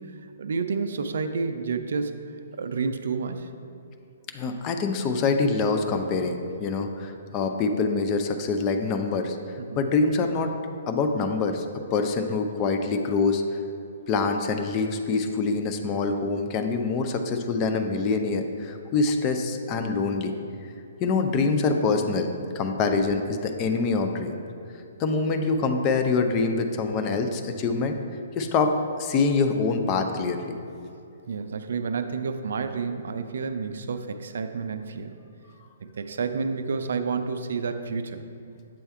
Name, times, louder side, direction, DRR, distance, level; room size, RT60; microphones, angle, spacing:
voice 1, 0.0-2.2 2.5-3.5 9.6-9.8 22.7-22.8 31.3-35.2 35.8-38.3, right 5 dB, 60° right, 8 dB, 0.3 m, -30 dB
voice 2, 4.3-10.5 10.9-11.6 11.9-13.4 14.1-20.3 21.0-22.3 22.5-24.4 25.0-28.0 28.4-30.5, left 4 dB, 30° left, 5 dB, 0.4 m, -25 dB
7.5 x 3.4 x 4.3 m, 2.6 s
figure-of-eight pair, 125°, 0 cm